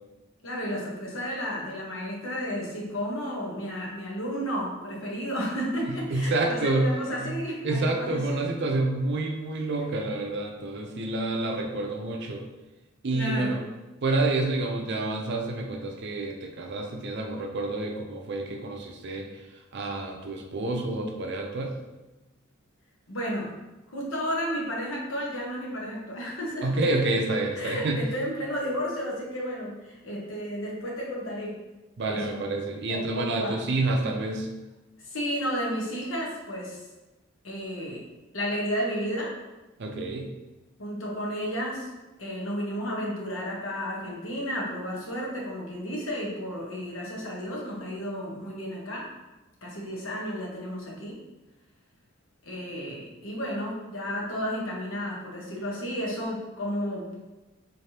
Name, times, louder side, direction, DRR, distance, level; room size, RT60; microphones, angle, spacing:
voice 1, 0.4-8.5 9.8-9.9 13.1-13.6 23.1-23.5 23.9-26.7 27.5-31.6 32.1-32.4 32.9-33.6 35.0-36.8 37.4-38.1 38.3-39.3 40.8-41.9 42.2-49.1 49.6-51.2 52.4-57.2, equal, 80° left, -3 dB, 1.1 m, -32 dB
voice 2, 6.1-6.9 7.2-7.4 7.6-12.4 13.0-13.6 14.0-19.3 19.7-21.7 26.6-28.0 32.0-34.5 39.8-40.3, right 2 dB, 55° right, 3 dB, 0.5 m, -28 dB
4.1 x 3.3 x 2.8 m, 1.1 s
head